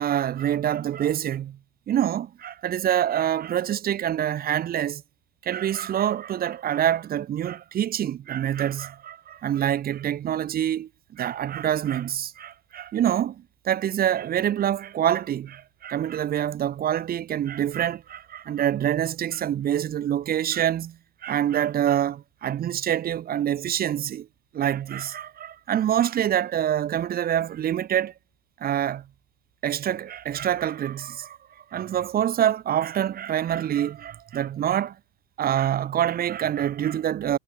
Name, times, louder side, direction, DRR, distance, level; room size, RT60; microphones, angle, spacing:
voice 1, 0.0-1.6 1.9-5.0 5.4-24.3 24.5-28.1 28.6-29.1 29.6-31.4 31.7-35.0 35.4-37.4, right 10 dB, 30° right, 0.7 m, -26 dB
supercardioid pair, 105°, 30 cm